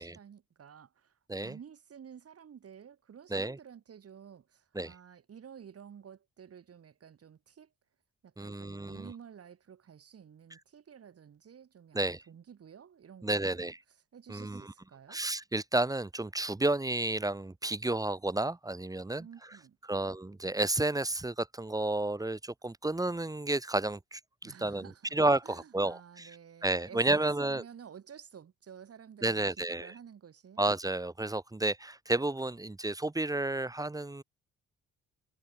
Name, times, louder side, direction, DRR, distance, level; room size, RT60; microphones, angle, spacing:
voice 1, 0.0-7.7 8.2-13.7 14.1-15.2 19.2-20.1 24.4-30.7, right 8 dB, 50° right, 4.8 m, -52 dB
voice 2, 8.4-9.1 11.9-12.2 13.2-13.7 14.3-14.6 15.1-19.3 19.9-24.9 25.1-26.3 26.6-27.6 29.2-29.9 30.6-34.2, right 2 dB, 10° right, 1.3 m, -31 dB
cardioid pair, 90°, 30 cm